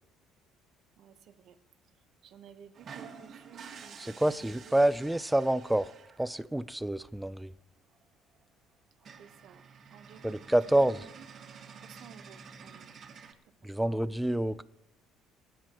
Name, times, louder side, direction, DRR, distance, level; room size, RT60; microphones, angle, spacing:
voice 1, 1.0-1.6 2.2-4.9 9.2-9.6 9.9-10.4 10.8-11.0 11.8-12.9 13.6-14.0, right 9 dB, 60° right, 1.1 m, -54 dB
sound 1, 2.7-6.4 7.9-8.0 8.3-8.4 8.7-8.8 9.0-13.3, right 6 dB, 45° right, 2.0 m, -50 dB
voice 2, 4.0-5.9 6.2-7.5 10.2-11.1 13.6-14.6, right 1 dB, 5° right, 0.5 m, -27 dB
26.5 x 10.0 x 3.0 m
cardioid pair, 110°, 0 cm